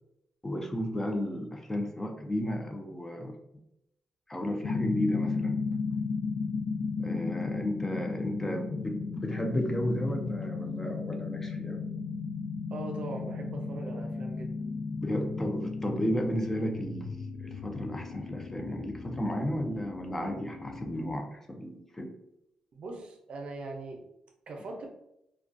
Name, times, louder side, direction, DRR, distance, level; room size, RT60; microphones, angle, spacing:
voice 1, 0.4-3.4 4.3-5.6 7.0-11.8 15.0-22.1, equal, 20° left, 3 dB, 0.4 m, -33 dB
sound 1, 4.6-21.2, left 4 dB, 80° left, 0.3 m, -35 dB
voice 2, 12.7-14.7 22.7-24.0 24.5-24.9, right 2 dB, 65° right, 2 dB, 0.5 m, -40 dB
2.2 x 2.2 x 2.5 m, 0.83 s
cardioid pair, 75°, 2 cm